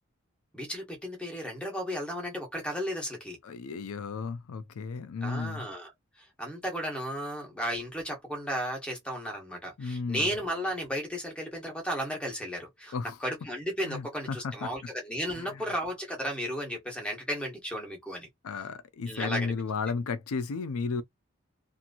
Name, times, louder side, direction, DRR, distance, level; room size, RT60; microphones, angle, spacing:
voice 1, 0.5-3.4 5.2-5.9 6.4-12.9 13.2-18.3 19.1-19.5, equal, 5° left, 1.1 m, -34 dB
voice 2, 3.4-5.7 9.8-10.3 12.9-13.2 13.8-14.7 15.4-15.6 18.4-21.0, left 4 dB, 85° left, 0.4 m, -34 dB
2.9 x 2.5 x 2.5 m
head